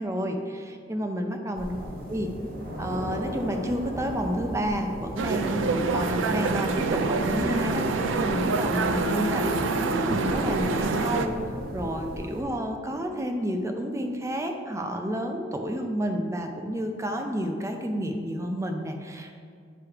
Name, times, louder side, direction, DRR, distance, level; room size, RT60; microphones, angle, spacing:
voice 1, 0.0-1.8 2.1-2.3 2.8-11.4 11.7-19.3, equal, 15° right, 4 dB, 0.5 m, -30 dB
sound 1, 1.5-12.4, equal, 50° right, 1.1 m, -36 dB
sound 2, 5.2-11.3, right 3 dB, 80° right, 0.4 m, -26 dB
8.8 x 3.1 x 4.7 m, 2.2 s
head